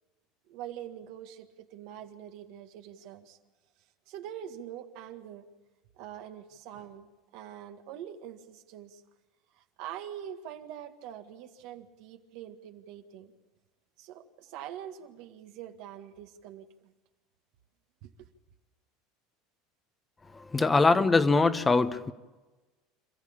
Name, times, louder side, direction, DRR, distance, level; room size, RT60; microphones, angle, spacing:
voice 1, 0.5-3.4 4.1-5.4 6.0-7.1 7.3-9.0 9.5-13.3 14.0-16.9 18.0-18.3, right 10 dB, 70° right, 1.8 m, -44 dB
voice 2, 20.3-22.1, left 3 dB, 20° left, 1.1 m, -23 dB
27.0 x 14.5 x 8.8 m
supercardioid pair, 100°, 0 cm